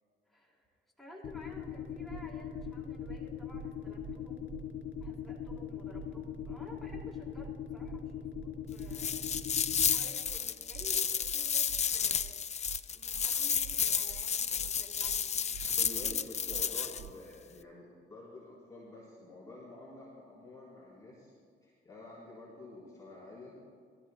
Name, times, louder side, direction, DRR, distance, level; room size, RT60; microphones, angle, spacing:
voice 1, 0.3-4.5 5.0-9.3 9.6-12.5 12.9-15.3, equal, ahead, -3 dB, 3.8 m, -53 dB
sound 1, 1.2-10.0, left 10 dB, 55° left, 4.3 m, -40 dB
sound 2, 2.1-2.2 2.6-2.7 3.0-3.2 3.5-3.7 4.0-4.2 4.5-4.6 5.0-5.1 5.4-5.6 5.9-6.1 6.4-6.6 6.9-7.0 7.4-7.5 7.8-8.0 8.3-8.5 8.8-9.0 9.3-9.4 9.8-9.9 10.2-10.4 10.7-10.9 11.2-11.4 11.7-11.8 12.2-12.3 12.6-12.8 13.1-13.3 13.6-13.8 14.1-14.2 14.6-14.7 15.0-15.2 15.5-15.7 16.0-16.2 16.5-16.6 17.0-17.1, right 14 dB, 60° right, 0.4 m, -47 dB
sound 3, 8.9-17.0, left 7 dB, 35° left, 0.5 m, -32 dB
voice 2, 15.8-21.3 21.6-23.5, left 2 dB, 20° left, -8 dB, 4.1 m, -49 dB
24.0 x 14.0 x 2.3 m, 2.1 s
cardioid pair, 90°, 20 cm